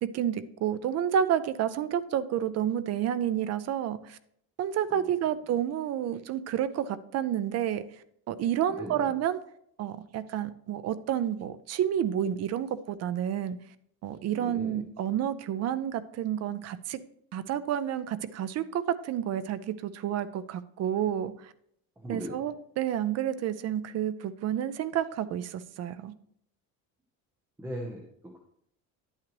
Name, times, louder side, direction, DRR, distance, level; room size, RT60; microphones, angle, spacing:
voice 1, 0.0-4.2 4.6-7.8 8.3-9.4 9.8-13.6 14.0-17.0 17.3-21.5 22.1-26.1, right 10 dB, 45° right, 14 dB, 0.5 m, -30 dB
voice 2, 8.7-9.1 14.3-14.9 22.0-22.3 27.6-28.4, equal, 5° right, 1 dB, 0.9 m, -39 dB
10.0 x 8.8 x 3.0 m, 0.70 s
cardioid pair, 180°, 36 cm